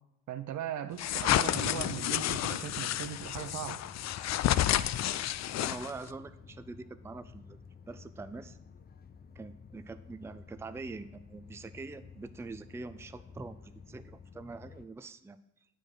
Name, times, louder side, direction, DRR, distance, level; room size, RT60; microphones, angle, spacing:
voice 1, 0.3-3.8, right 10 dB, 70° right, 10 dB, 0.8 m, -38 dB
sound 1, 1.0-6.1, left 12 dB, 60° left, 0.5 m, -30 dB
Bass guitar, 1.4-7.7, right 3 dB, 40° right, 1.7 m, -57 dB
sound 2, 3.0-14.9, left 6 dB, 30° left, 0.7 m, -53 dB
voice 2, 5.6-7.6 7.9-8.6 9.3-15.4, right 3 dB, 10° right, 11 dB, 0.4 m, -44 dB
8.6 x 4.9 x 7.7 m, 0.82 s
cardioid pair, 90°, 30 cm